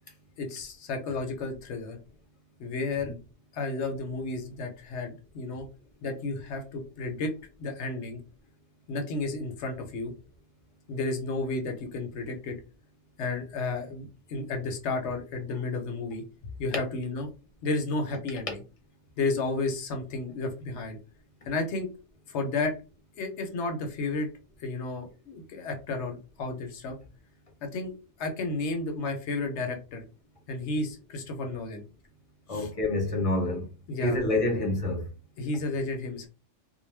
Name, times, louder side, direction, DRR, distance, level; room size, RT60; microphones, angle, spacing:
voice 1, 0.4-2.0 2.6-3.1 3.5-5.7 6.0-7.3 7.6-8.2 8.9-10.1 10.9-12.6 13.2-16.2 16.6-17.3 17.6-18.6 19.2-21.0 21.5-21.9 22.3-22.7 23.2-24.3 24.6-27.0 27.6-27.9 28.2-30.0 30.5-31.8 32.5-32.7 33.9-34.2 35.4-36.3, left 3 dB, 70° left, 0.9 m, -32 dB
voice 2, 32.5-33.7 34.0-35.1, left 1 dB, 35° left, 0.7 m, -27 dB
2.3 x 2.1 x 3.2 m
omnidirectional pair, 1.2 m